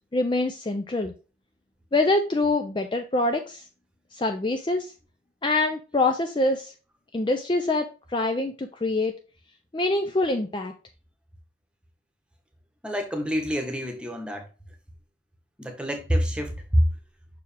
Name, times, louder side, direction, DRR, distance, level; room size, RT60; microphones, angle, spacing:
voice 1, 0.1-1.1 1.9-3.6 4.1-4.9 5.4-6.7 7.1-9.1 9.7-10.7, left 2 dB, 25° left, 0.4 m, -25 dB
voice 2, 12.8-14.5 15.6-16.8, equal, 5° right, 1.1 m, -26 dB
6.1 x 4.8 x 3.3 m
head